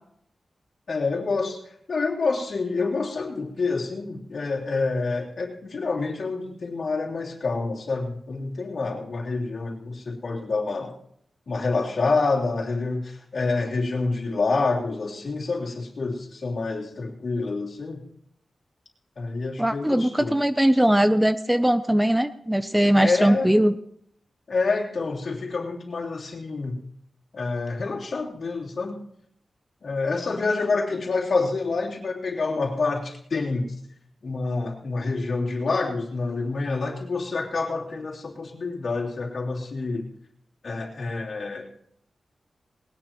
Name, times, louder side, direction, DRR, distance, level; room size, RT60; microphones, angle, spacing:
voice 1, 0.9-1.6 1.9-10.9 11.5-18.0 19.1-20.4 23.0-23.5 24.5-26.8 27.3-29.0 29.8-33.7 34.2-40.1 40.6-41.7, left 3 dB, 55° left, -3 dB, 3.3 m, -27 dB
voice 2, 19.6-23.8, right 1 dB, 5° right, 11 dB, 0.5 m, -20 dB
20.0 x 18.5 x 3.0 m, 0.71 s
wide cardioid pair, 150°, 0 cm